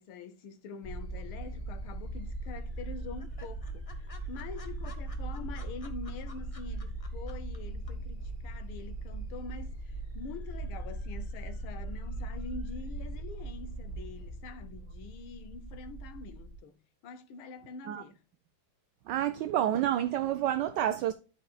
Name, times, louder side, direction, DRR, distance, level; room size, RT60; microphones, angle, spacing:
voice 1, 0.0-16.8 17.0-18.2, left 5 dB, 80° left, 1.8 m, -45 dB
sound 1, 0.8-16.6, right 2 dB, 25° left, 2.6 m, -39 dB
sound 2, 1.5-2.2 2.4-2.5 2.8-2.9 3.2-7.6 7.9-8.0, left 4 dB, 45° left, 0.4 m, -53 dB
voice 2, 19.1-21.1, right 11 dB, 70° right, 1.1 m, -29 dB
12.5 x 5.3 x 2.3 m
omnidirectional pair, 2.3 m